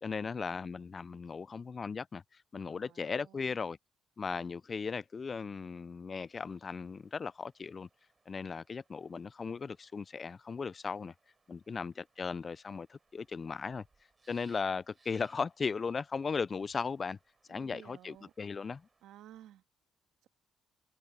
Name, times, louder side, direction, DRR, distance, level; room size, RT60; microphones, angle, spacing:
voice 1, 0.0-3.8 4.2-7.9 8.3-11.1 11.5-13.8 14.3-17.2 17.5-18.9, left 5 dB, 35° left, 0.4 m, -37 dB
voice 2, 2.7-3.6 17.5-18.3 19.0-19.6 20.2-20.3, right 12 dB, 85° right, 1.7 m, -55 dB
sound 1, 6.2-19.0, right 4 dB, 30° right, 3.7 m, -71 dB
cardioid pair, 90°, 0 cm